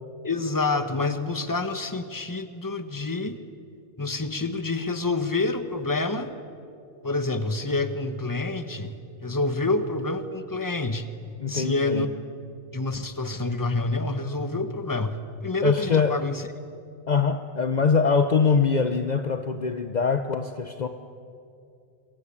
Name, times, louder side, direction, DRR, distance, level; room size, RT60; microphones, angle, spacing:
voice 1, 0.2-3.4 4.0-6.3 7.0-9.0 9.2-11.1 11.5-12.1 12.7-15.2 15.4-16.4, left 3 dB, 20° left, 10 dB, 1.3 m, -27 dB
voice 2, 11.4-12.1 15.6-16.2 17.1-20.9, left 5 dB, 45° left, 8 dB, 0.9 m, -23 dB
27.5 x 22.0 x 8.7 m, 2.6 s
omnidirectional pair, 1.1 m